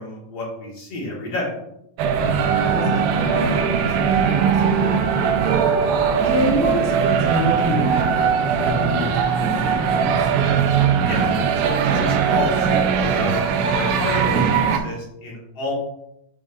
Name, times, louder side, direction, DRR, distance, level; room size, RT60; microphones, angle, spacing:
voice 1, 0.0-1.5 11.1-11.3 11.5-15.7, left 2 dB, 50° left, -5 dB, 2.4 m, -30 dB
sound 1, 2.0-14.8, right 6 dB, 85° right, 2.5 m, -20 dB
voice 2, 2.2-10.3, equal, 85° left, -4 dB, 0.6 m, -29 dB
7.6 x 5.0 x 2.6 m, 0.78 s
omnidirectional pair, 4.3 m